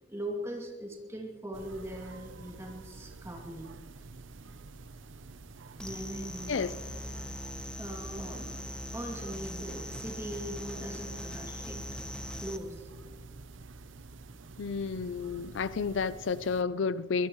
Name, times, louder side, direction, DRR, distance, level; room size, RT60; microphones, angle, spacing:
voice 1, 0.1-3.7 5.8-6.6 7.8-8.5 8.9-11.8 12.3-12.9, right 1 dB, 15° right, 0 dB, 2.6 m, -40 dB
sound 1, 1.5-16.6, right 3 dB, 80° right, 0.7 m, -49 dB
sound 2, 5.8-12.6, left 1 dB, 5° left, 1.0 m, -41 dB
voice 2, 14.6-17.3, left 5 dB, 75° left, 16 dB, 0.5 m, -31 dB
22.5 x 20.0 x 3.1 m, 1.5 s
head